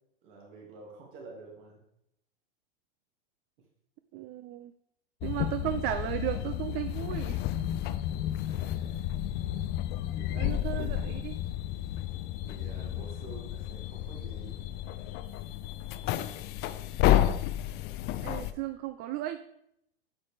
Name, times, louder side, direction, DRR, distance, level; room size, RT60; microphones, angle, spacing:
voice 1, 0.2-1.8 7.9-8.1 8.4-9.2 10.1-10.4 10.9-11.4 12.4-14.6, right 3 dB, 55° right, -1 dB, 2.3 m, -50 dB
voice 2, 4.1-4.7 5.2-7.4 10.3-11.4 18.2-19.4, right 14 dB, 35° right, 9 dB, 0.5 m, -35 dB
sound 1, 5.2-18.5, left 12 dB, 35° left, 0.5 m, -31 dB
8.9 x 7.1 x 3.3 m, 0.77 s
hypercardioid pair, 100°, 30 cm